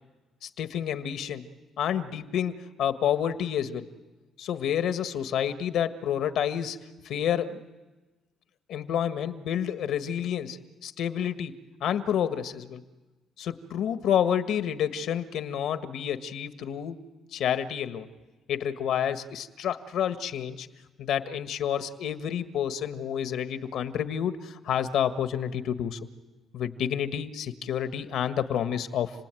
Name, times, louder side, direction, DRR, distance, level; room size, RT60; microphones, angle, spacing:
voice 1, 0.4-1.5 1.8-3.9 4.4-6.8 7.0-7.6 8.7-10.6 10.8-12.8 13.4-17.0 17.3-18.1 18.5-20.7 21.0-26.0 26.5-29.1, left 9 dB, 75° left, 10 dB, 1.5 m, -29 dB
29.5 x 19.5 x 9.1 m, 1.2 s
cardioid pair, 130°, 0 cm